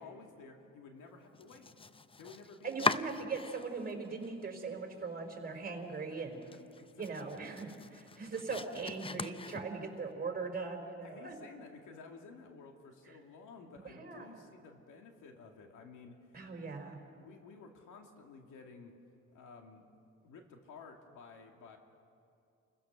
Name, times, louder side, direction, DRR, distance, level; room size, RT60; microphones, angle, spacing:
voice 1, 0.0-1.7 2.2-3.0 5.5-5.6 6.1-7.4 11.0-16.4 17.1-19.0 19.3-19.9 20.2-21.8, left 4 dB, 85° left, 3 dB, 2.5 m, -54 dB
Domestic sounds home sounds, 1.3-3.9 4.2-5.0 5.3-5.4 5.9-6.0 6.3-10.0, left 4 dB, 20° left, 0.6 m, -40 dB
voice 2, 2.6-6.4 7.0-11.4 13.8-14.3 16.3-17.0, right 4 dB, 30° right, 3 dB, 3.9 m, -40 dB
30.0 x 16.0 x 6.6 m, 2.5 s
cardioid pair, 90°, 30 cm